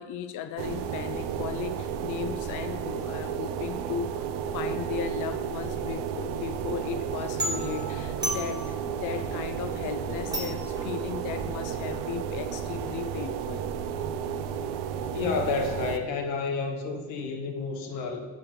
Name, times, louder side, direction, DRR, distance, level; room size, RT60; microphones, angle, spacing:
voice 1, 0.0-13.6, left 8 dB, 40° left, 10 dB, 0.4 m, -36 dB
sound 1, 0.6-16.0, right 8 dB, 70° right, 0.6 m, -33 dB
sound 2, 7.2-12.9, equal, 10° right, 1.8 m, -37 dB
voice 2, 15.1-18.3, left 4 dB, 85° left, 4 dB, 0.9 m, -30 dB
8.6 x 4.0 x 3.0 m, 1.3 s
hypercardioid pair, 75°, 49 cm